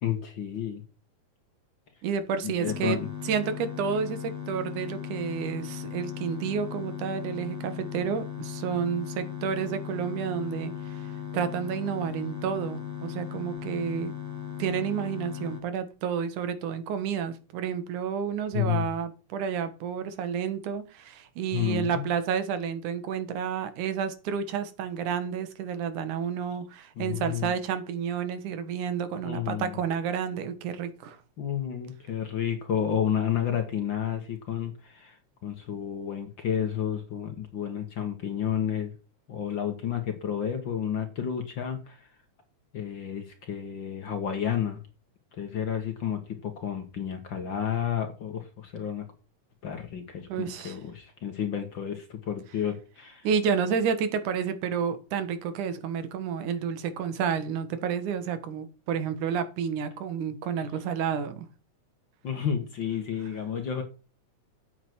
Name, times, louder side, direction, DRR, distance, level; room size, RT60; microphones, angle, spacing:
voice 1, 0.0-0.8 2.4-3.1 18.5-18.9 21.5-22.1 27.0-27.5 29.2-29.7 31.4-38.9 39.3-42.1 42.7-44.8 45.4-49.0 49.6-53.3 62.2-63.8, left 9 dB, 50° left, 1.6 m, -31 dB
voice 2, 2.0-3.0 3.2-14.1 14.6-31.2 50.3-50.8 53.2-61.5, right 7 dB, 90° right, 2.8 m, -30 dB
sound 1, 2.7-15.6, left 8 dB, 20° right, 0.4 m, -37 dB
8.4 x 8.0 x 4.6 m
omnidirectional pair, 3.4 m